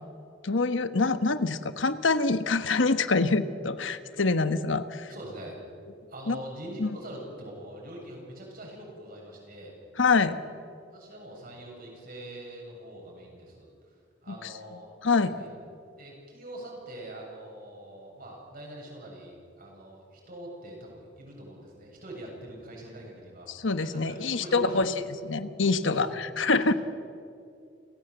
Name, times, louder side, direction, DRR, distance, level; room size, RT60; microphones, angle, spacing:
voice 1, 0.4-5.1 6.3-6.4 6.8-6.9 10.0-10.4 14.3-14.5 15.0-15.3 23.5-24.9 25.2-26.7, left 3 dB, 85° left, 11 dB, 1.2 m, -25 dB
voice 2, 5.1-5.6 6.1-9.8 10.9-14.0 14.2-14.9 15.3-15.5 16.0-23.5 23.8-24.8 25.8-26.2 26.5-26.8, right 1 dB, 50° right, -1 dB, 7.4 m, -43 dB
29.0 x 16.5 x 8.0 m, 2.4 s
head